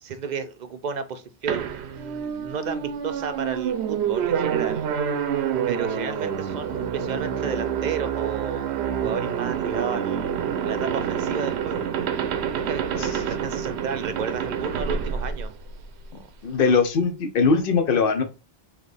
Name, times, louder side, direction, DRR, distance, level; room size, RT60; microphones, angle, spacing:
voice 1, 0.0-4.9 5.7-8.7 9.0-10.3 10.6-11.9 12.5-15.5 16.1-16.2, right 5 dB, 55° right, 0.6 m, -32 dB
sound 1, 1.5-16.0, right 8 dB, 85° right, 0.9 m, -27 dB
voice 2, 16.4-18.2, left 5 dB, 60° left, 0.9 m, -21 dB
4.0 x 3.1 x 3.3 m
omnidirectional pair, 1.1 m